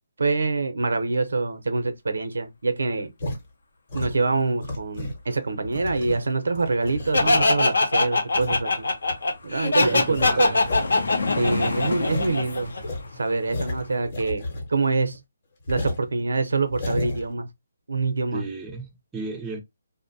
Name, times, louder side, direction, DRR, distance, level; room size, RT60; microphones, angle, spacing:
voice 1, 0.2-3.1 3.9-8.9 9.4-10.6 11.4-12.7 13.2-15.2 15.7-17.5 17.9-18.4, right 3 dB, 90° right, 0.6 m, -25 dB
sound 1, 3.2-3.4 3.9-5.2 5.6-7.7 8.3-8.7 9.1-9.2 9.6-9.7 10.0-10.9 11.1-11.2 11.6-11.7 12.0-12.3 12.8-14.9 15.1-15.2 15.7-16.0 16.6-17.3, left 1 dB, 30° left, 0.8 m, -32 dB
Laughter, 7.1-12.8, left 3 dB, 90° left, 0.9 m, -22 dB
sound 2, 7.9-8.0 8.3-14.0, left 3 dB, 75° left, 0.6 m, -33 dB
voice 2, 9.8-10.6 18.3-19.6, right 4 dB, 5° right, 0.4 m, -35 dB
2.6 x 2.1 x 2.5 m
hypercardioid pair, 175°, 0 cm